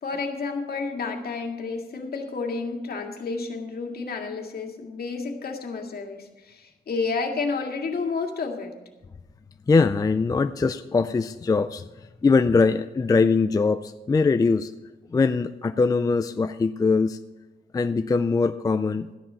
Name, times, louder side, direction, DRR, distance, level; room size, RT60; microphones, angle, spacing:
voice 1, 0.0-8.8, left 4 dB, 55° left, 2 dB, 2.0 m, -30 dB
voice 2, 9.7-11.8 12.2-14.7 15.1-17.2 17.7-19.1, left 4 dB, 20° left, 10 dB, 0.3 m, -22 dB
13.0 x 10.0 x 5.6 m, 1.1 s
wide cardioid pair, 155°, 18 cm